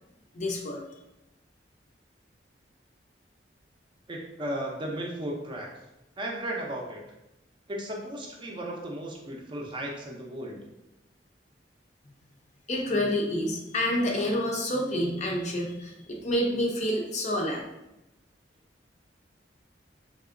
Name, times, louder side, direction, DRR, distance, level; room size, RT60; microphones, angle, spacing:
voice 1, 0.3-0.8 12.7-17.6, left 1 dB, 40° left, 0 dB, 0.5 m, -28 dB
voice 2, 4.1-5.9 6.2-7.0 7.7-10.7, right 1 dB, 25° right, -1 dB, 0.5 m, -35 dB
3.5 x 2.8 x 2.5 m, 0.91 s
head